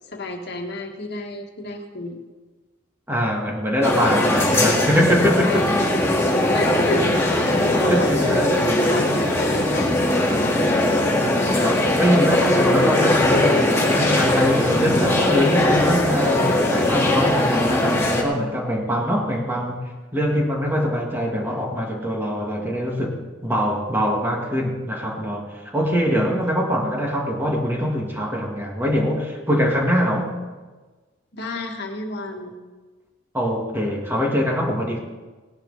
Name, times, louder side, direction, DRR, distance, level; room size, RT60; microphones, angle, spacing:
voice 1, 0.1-2.2 5.4-5.9 6.5-10.6 31.3-32.6, left 2 dB, 60° left, 2 dB, 1.6 m, -32 dB
voice 2, 3.1-6.1 7.5-9.1 11.6-30.4 33.3-35.0, equal, 10° right, 0 dB, 1.8 m, -23 dB
sound 1, 3.8-18.2, left 1 dB, 15° left, 1.9 m, -20 dB
18.0 x 10.5 x 4.1 m, 1.3 s
head